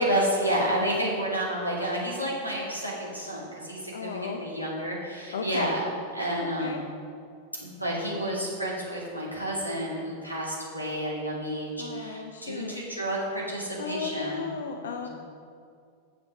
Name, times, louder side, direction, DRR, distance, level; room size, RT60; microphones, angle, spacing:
voice 1, 0.0-5.9 6.1-6.8 7.6-14.5 15.0-15.1, right 1 dB, 90° right, -5 dB, 2.4 m, -30 dB
voice 2, 3.9-4.4 5.3-5.7 6.6-6.8 11.8-12.8 13.8-15.1, left 5 dB, 65° left, 5 dB, 0.6 m, -35 dB
8.5 x 6.8 x 6.0 m, 2.3 s
figure-of-eight pair, 90°, 0 cm